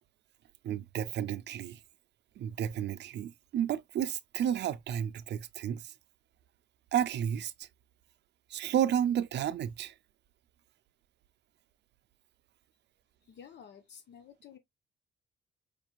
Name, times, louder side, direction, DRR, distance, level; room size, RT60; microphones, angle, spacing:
voice 1, 0.6-1.8 2.4-5.9 6.9-7.7 8.5-9.9, right 9 dB, 60° right, 0.4 m, -32 dB
voice 2, 13.2-14.6, left 8 dB, 60° left, 0.7 m, -52 dB
5.0 x 2.9 x 2.3 m
cardioid pair, 90°, 20 cm